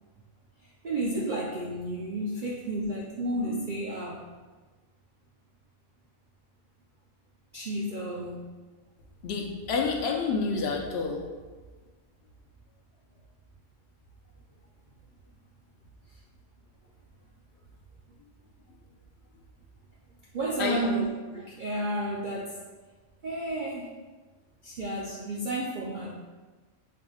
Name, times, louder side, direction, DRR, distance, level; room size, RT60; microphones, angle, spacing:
voice 1, 0.8-4.2 7.5-8.5 20.3-22.6 23.2-23.9 24.6-26.1, right 1 dB, 85° right, -4 dB, 0.4 m, -31 dB
voice 2, 9.2-11.2 20.6-20.9, left 4 dB, 60° left, 2 dB, 0.7 m, -29 dB
5.0 x 3.7 x 2.3 m, 1.3 s
omnidirectional pair, 1.5 m